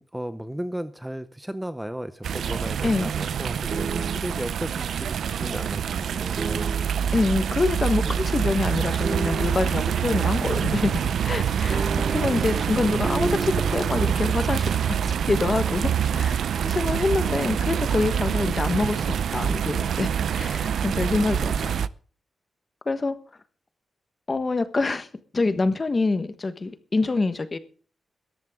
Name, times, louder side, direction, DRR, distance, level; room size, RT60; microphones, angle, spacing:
voice 1, 0.0-6.9, right 1 dB, 5° right, 0.7 m, -35 dB
sound 1, 2.2-21.9, right 8 dB, 85° right, 0.6 m, -26 dB
sound 2, 3.7-4.5 6.4-7.2 9.0-9.9 11.7-14.4, right 4 dB, 35° right, 1.1 m, -33 dB
voice 2, 7.1-21.7 22.9-23.2 24.3-25.1 25.3-27.6, left 3 dB, 25° left, 1.3 m, -26 dB
18.0 x 14.0 x 3.7 m
wide cardioid pair, 170°, 0 cm